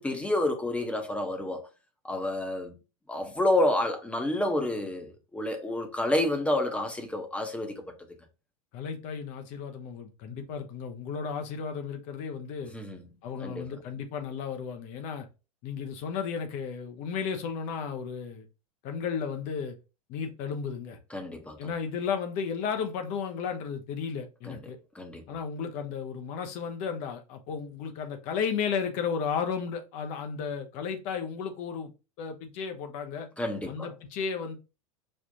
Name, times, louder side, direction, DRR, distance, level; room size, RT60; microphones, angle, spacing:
voice 1, 0.0-1.7 2.0-2.7 3.1-7.9 12.7-13.0 13.4-13.7 21.1-21.7 24.4-24.6 24.9-25.2 33.4-33.9, left 1 dB, 5° left, 0.8 m, -29 dB
voice 2, 8.7-12.7 13.2-15.3 15.6-18.4 18.8-19.8 20.1-21.0 21.6-24.8 25.3-31.9 32.2-33.3 33.7-34.6, left 6 dB, 40° left, 0.6 m, -34 dB
5.3 x 2.4 x 2.7 m
figure-of-eight pair, 85°, 18 cm